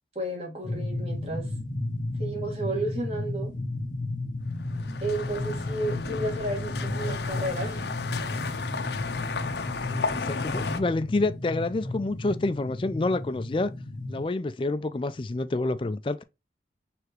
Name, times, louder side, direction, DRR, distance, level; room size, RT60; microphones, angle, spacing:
voice 1, 0.2-1.5 2.2-3.5 5.0-7.9, right 1 dB, 35° right, 1.8 m, -32 dB
sound 1, 0.6-14.2, left 2 dB, 45° left, 0.8 m, -33 dB
sound 2, 4.5-10.8, left 4 dB, 75° left, 0.6 m, -33 dB
voice 2, 9.9-13.7 14.1-16.2, left 2 dB, 30° left, 0.3 m, -28 dB
4.8 x 3.4 x 3.0 m
head